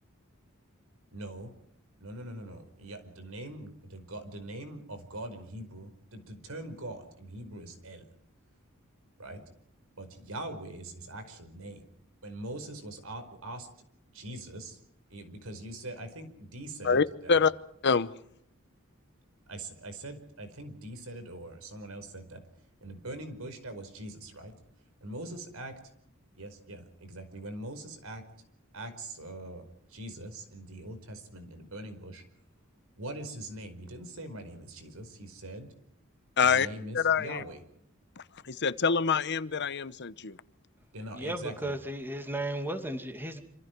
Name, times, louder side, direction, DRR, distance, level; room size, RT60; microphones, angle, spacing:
voice 1, 1.1-1.5 2.0-8.1 9.2-9.4 10.0-11.8 12.2-13.7 14.1-14.8 15.1-17.4 19.5-22.4 22.8-24.6 25.0-25.8 26.3-28.3 28.7-32.2 33.0-35.7 36.4-37.6 40.9-41.7, right 1 dB, 80° right, 4.9 m, -42 dB
voice 2, 16.8-17.5 17.8-18.1 36.4-36.7 36.9-37.4 38.5-40.4, left 5 dB, 55° left, 1.0 m, -25 dB
voice 3, 41.1-43.4, right 1 dB, 10° right, 2.5 m, -35 dB
27.0 x 26.5 x 4.7 m
head